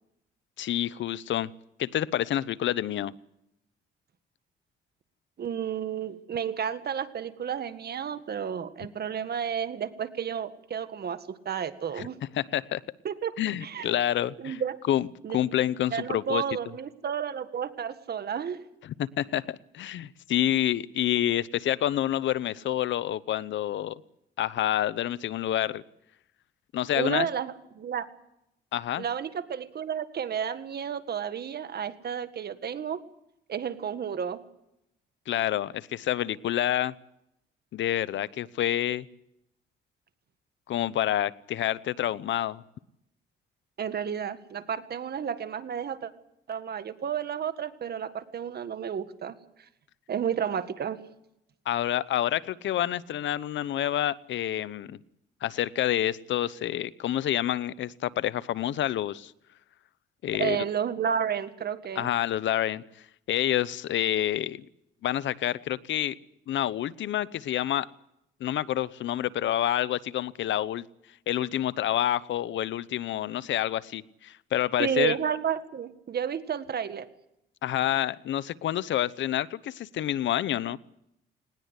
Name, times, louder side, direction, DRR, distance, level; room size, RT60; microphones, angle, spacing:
voice 1, 0.6-1.5 1.8-3.1 12.0-12.1 12.4-12.8 13.4-14.6 14.9-15.1 15.3-16.4 18.8-24.0 24.4-25.8 26.7-27.3 28.7-29.0 35.3-36.9 37.7-39.0 40.7-42.6 51.7-55.0 55.4-59.3 60.2-60.6 62.0-62.8 63.3-64.6 65.0-66.2 66.5-67.9 68.4-70.8 71.3-75.2 77.6-80.8, left 12 dB, 70° left, 19 dB, 0.8 m, -28 dB
voice 2, 5.4-12.2 13.0-13.3 13.6-13.9 14.4-14.7 15.2-15.4 15.9-18.6 26.9-28.1 29.0-33.0 33.5-34.4 43.8-46.1 46.5-49.7 50.1-51.0 60.4-62.1 74.8-77.1, right 8 dB, 55° right, 11 dB, 1.8 m, -31 dB
20.0 x 19.0 x 8.2 m, 0.81 s
cardioid pair, 90°, 20 cm